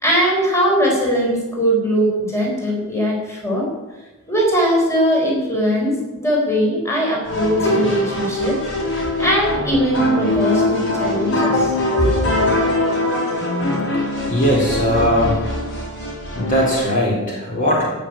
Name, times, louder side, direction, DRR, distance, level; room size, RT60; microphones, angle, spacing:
voice 1, 0.0-3.7 4.3-8.6 9.2-12.4, equal, 10° left, -2 dB, 4.4 m, -20 dB
sound 1, 7.2-16.8, left 2 dB, 55° left, 5.8 m, -22 dB
voice 2, 14.3-15.4 16.4-17.9, equal, 35° left, -3 dB, 3.9 m, -19 dB
17.0 x 6.7 x 8.9 m, 1.2 s
head